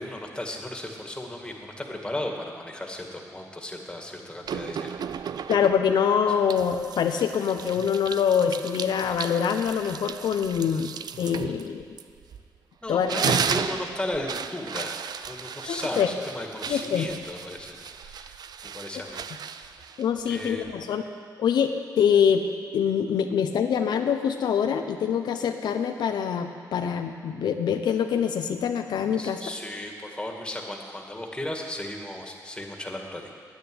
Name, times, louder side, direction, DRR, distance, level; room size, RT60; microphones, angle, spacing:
voice 1, 0.0-5.4 10.6-10.8 12.8-18.4 18.6-19.2 19.5-19.9 20.3-20.8 29.2-33.3, left 1 dB, 10° left, 1 dB, 2.1 m, -36 dB
sound 1, 4.5-6.0 6.5-12.6 12.9-20.7, right 7 dB, 65° right, 0.5 m, -34 dB
voice 2, 5.5-10.9 11.2-11.8 12.9-13.4 15.7-16.1 16.7-17.1 20.0-21.0 21.4-22.4 22.7-29.4, left 7 dB, 85° left, 6 dB, 0.7 m, -24 dB
9.7 x 9.4 x 9.6 m, 2.2 s
cardioid pair, 80°, 7 cm